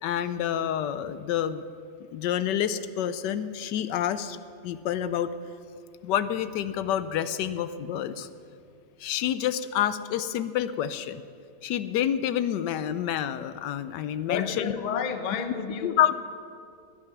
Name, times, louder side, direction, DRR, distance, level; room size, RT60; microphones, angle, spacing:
voice 1, 0.0-1.6 2.1-4.4 4.6-5.3 6.0-8.3 9.0-11.2 11.6-14.7 15.8-16.2, left 10 dB, 80° left, 13 dB, 1.2 m, -28 dB
voice 2, 14.2-16.0, left 6 dB, 35° left, 8 dB, 0.8 m, -31 dB
19.5 x 9.8 x 6.0 m, 2.4 s
omnidirectional pair, 1.9 m